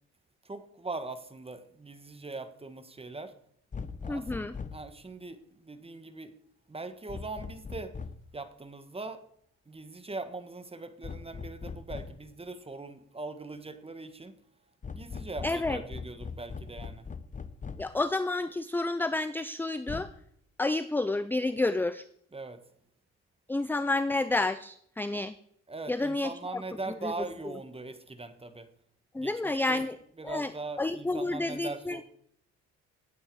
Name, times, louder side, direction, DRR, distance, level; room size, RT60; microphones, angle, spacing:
voice 1, 0.4-3.3 4.0-6.3 6.7-8.0 8.3-9.2 9.7-14.4 14.9-17.1 22.3-22.6 25.7-28.7 29.1-29.8 30.2-32.0, right 3 dB, 20° right, 10 dB, 1.5 m, -41 dB
sound 1, 3.7-4.9 7.1-8.3 11.0-12.3 14.8-18.0 19.9-20.0, left 5 dB, 25° left, 0.9 m, -40 dB
voice 2, 4.1-4.6 15.4-15.8 17.8-20.1 20.6-22.0 23.5-25.4 25.9-26.6 27.0-27.1 29.1-30.0 30.2-30.5 30.8-32.0, left 2 dB, 5° left, 14 dB, 0.5 m, -30 dB
16.0 x 8.8 x 4.8 m, 0.67 s
cardioid pair, 90°, 30 cm